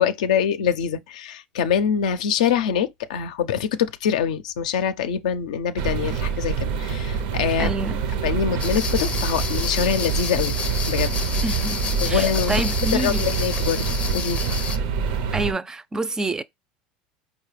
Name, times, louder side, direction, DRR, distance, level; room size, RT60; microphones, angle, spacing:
voice 1, 0.0-7.7 8.2-10.6 10.9-11.2 12.0-12.6 12.9-14.5, left 8 dB, 80° left, 0.4 m, -24 dB
sound 1, 5.8-15.5, right 6 dB, 75° right, 0.6 m, -26 dB
voice 2, 7.6-8.0 11.4-11.8 12.0-13.2 15.3-16.4, right 2 dB, 15° right, 0.3 m, -27 dB
sound 2, 8.6-14.8, left 6 dB, 35° left, 0.6 m, -30 dB
4.7 x 2.2 x 3.1 m
hypercardioid pair, 95°, 4 cm